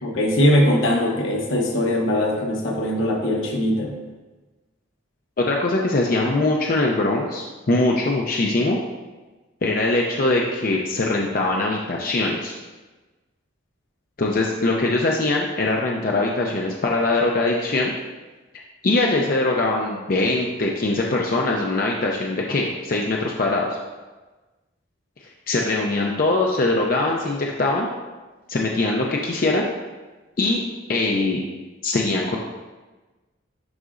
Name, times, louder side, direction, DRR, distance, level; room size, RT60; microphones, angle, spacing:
voice 1, 0.0-4.0, left 1 dB, 75° left, 1 dB, 1.0 m, -21 dB
voice 2, 5.4-8.8 9.6-12.5 14.2-17.9 18.8-23.7 25.5-27.9 28.5-29.7 30.4-30.6 30.9-31.4 31.8-32.4, left 2 dB, 45° left, -1 dB, 0.5 m, -22 dB
11.0 x 4.0 x 2.5 m, 1.2 s
head